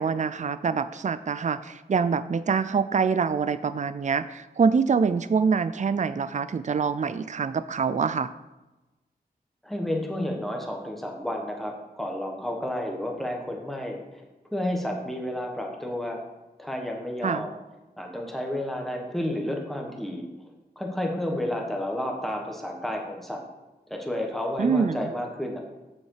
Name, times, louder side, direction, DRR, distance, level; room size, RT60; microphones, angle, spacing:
voice 1, 0.0-8.3 17.2-17.5 24.6-25.1, right 5 dB, 45° right, 14 dB, 0.4 m, -25 dB
voice 2, 9.6-14.2 14.5-16.2 16.6-17.6 18.0-20.3 20.7-23.4 23.9-25.6, left 1 dB, ahead, 1 dB, 1.5 m, -31 dB
7.1 x 6.5 x 4.9 m, 1.1 s
wide cardioid pair, 75°, 17 cm